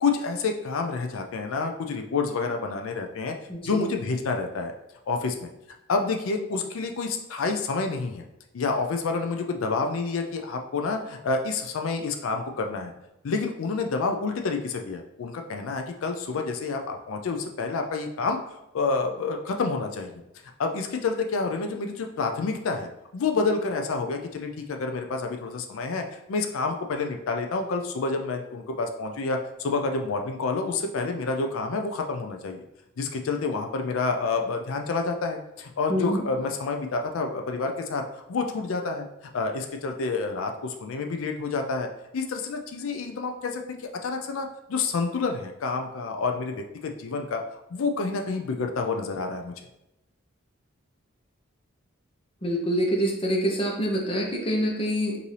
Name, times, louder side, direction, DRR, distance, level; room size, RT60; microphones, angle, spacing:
voice 1, 0.0-3.3 3.7-4.7 5.1-5.5 5.9-8.2 8.5-12.9 13.2-20.1 20.6-32.6 33.0-38.0 38.3-39.1 39.3-49.5, left 4 dB, 85° left, 4 dB, 0.4 m, -28 dB
voice 2, 3.5-3.9 35.9-36.2 52.4-55.2, equal, 25° left, 0 dB, 0.8 m, -26 dB
5.3 x 2.7 x 3.2 m, 0.90 s
head